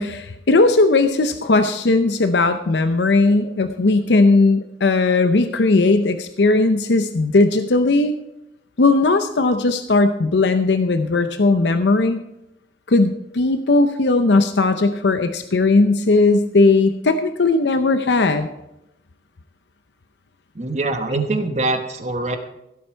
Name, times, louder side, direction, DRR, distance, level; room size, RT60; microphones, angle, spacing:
voice 1, 0.0-8.1 8.8-12.2 12.9-18.5, left 3 dB, 80° left, 9 dB, 0.7 m, -17 dB
voice 2, 20.5-22.4, right 2 dB, 40° right, 6 dB, 1.1 m, -23 dB
16.0 x 8.4 x 4.6 m, 0.88 s
head